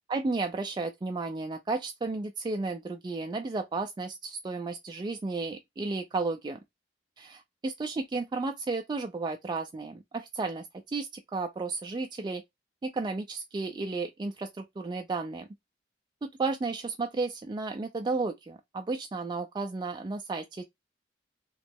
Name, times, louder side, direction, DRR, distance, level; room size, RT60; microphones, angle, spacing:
voice 1, 0.1-6.6 7.2-12.4 12.8-15.5 16.2-20.6, right 3 dB, 25° right, 0.3 m, -33 dB
3.1 x 2.9 x 3.4 m
head